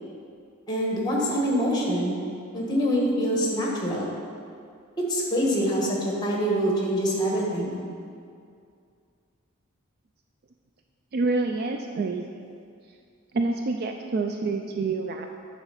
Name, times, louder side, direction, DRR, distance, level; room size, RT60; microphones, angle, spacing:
voice 1, 0.7-2.2 2.5-4.1 5.1-7.8, equal, 20° left, -3 dB, 1.4 m, -25 dB
voice 2, 11.1-12.2 13.3-15.3, right 3 dB, 45° right, 4 dB, 0.3 m, -27 dB
8.9 x 4.2 x 5.6 m, 2.3 s
head